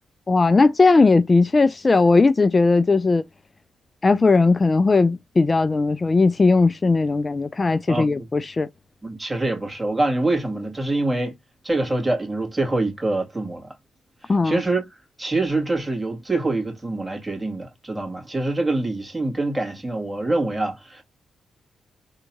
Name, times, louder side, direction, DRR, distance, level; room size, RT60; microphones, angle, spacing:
voice 1, 0.3-3.2 4.0-8.7 14.3-14.6, left 3 dB, 35° left, 0.4 m, -18 dB
voice 2, 7.9-8.3 9.0-11.3 11.6-13.7 14.2-14.9 15.2-21.0, right 2 dB, 15° right, 2.2 m, -25 dB
3.7 x 2.8 x 2.2 m
supercardioid pair, 60°, 0 cm